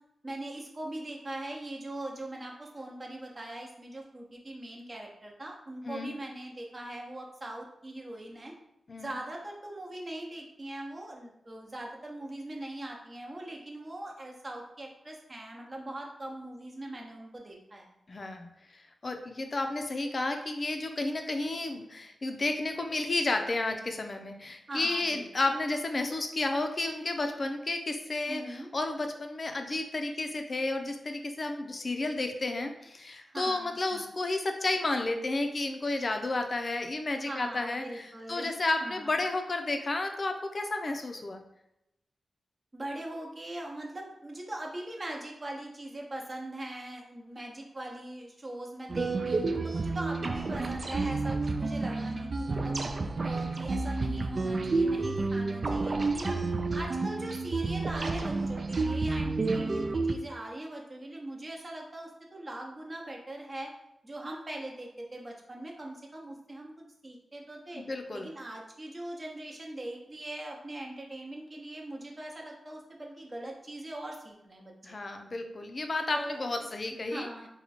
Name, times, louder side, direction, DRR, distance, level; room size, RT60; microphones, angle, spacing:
voice 1, 0.2-8.5 9.0-17.9 24.7-25.2 28.3-28.7 33.3-34.0 37.2-38.5 38.8-39.1 42.7-52.8 53.2-63.7 64.0-66.7 67.0-67.8 68.1-75.0 76.1-76.5 77.1-77.5, right 1 dB, 35° right, 0 dB, 0.8 m, -41 dB
voice 2, 18.1-18.5 18.7-41.4 67.7-68.3 74.8-77.3, left 2 dB, 45° left, 5 dB, 0.5 m, -32 dB
sound 1, 48.9-60.1, right 3 dB, 50° right, 0.3 m, -30 dB
2.9 x 2.3 x 4.2 m, 0.85 s
cardioid pair, 65°, 0 cm